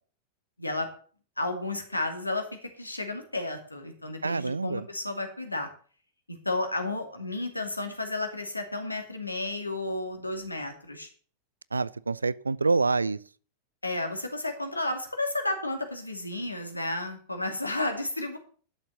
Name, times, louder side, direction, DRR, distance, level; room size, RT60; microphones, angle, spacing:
voice 1, 1.4-5.7 6.3-11.1 13.8-18.4, left 2 dB, 85° left, 2.3 m, -32 dB
voice 2, 4.2-4.9 11.7-13.2, right 3 dB, 80° right, 0.4 m, -26 dB
11.5 x 7.3 x 6.9 m
figure-of-eight pair, 90°, 0 cm